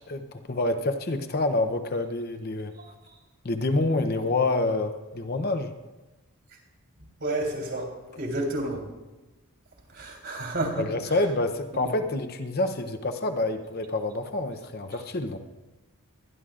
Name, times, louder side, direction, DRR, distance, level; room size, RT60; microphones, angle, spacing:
voice 1, 0.1-2.7 3.4-5.7 10.8-15.4, left 2 dB, 45° left, 7 dB, 0.7 m, -27 dB
voice 2, 7.2-7.9 8.2-8.8 9.9-10.8 11.7-11.9, right 1 dB, 55° right, 1 dB, 3.3 m, -30 dB
23.5 x 11.0 x 2.5 m, 1.1 s
head